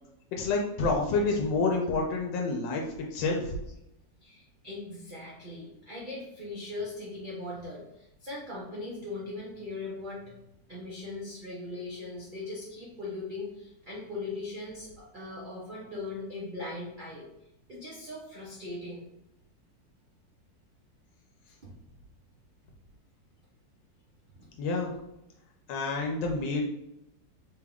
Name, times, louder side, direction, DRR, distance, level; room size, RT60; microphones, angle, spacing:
voice 1, 0.3-3.6 24.6-25.0 25.7-26.6, left 3 dB, 90° left, 0 dB, 1.3 m, -28 dB
voice 2, 4.2-10.4 10.7-17.3 17.7-19.1 21.6-21.7 24.3-24.5, left 2 dB, 75° right, -5 dB, 0.4 m, -39 dB
3.6 x 2.3 x 3.5 m, 0.84 s
omnidirectional pair, 1.9 m